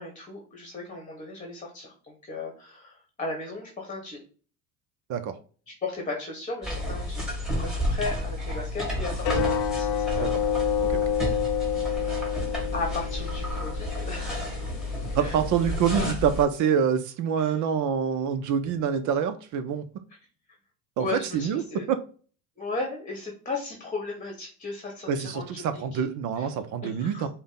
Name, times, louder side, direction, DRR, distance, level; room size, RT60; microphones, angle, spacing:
voice 1, 0.0-4.2 5.7-10.3 11.2-11.3 11.9-12.2 12.7-14.5 15.2-15.4 17.4-17.5 21.0-21.8 22.6-26.0 26.4-26.5 26.8-27.3, left 3 dB, 15° left, 1.2 m, -36 dB
sound 1, 6.6-16.5, left 1 dB, ahead, 1.6 m, -31 dB
sound 2, 9.2-16.1, left 8 dB, 40° left, 0.5 m, -29 dB
voice 2, 15.0-19.8 21.0-22.0 25.1-27.3, right 7 dB, 40° right, 0.5 m, -26 dB
5.2 x 2.2 x 3.8 m
hypercardioid pair, 85°, 49 cm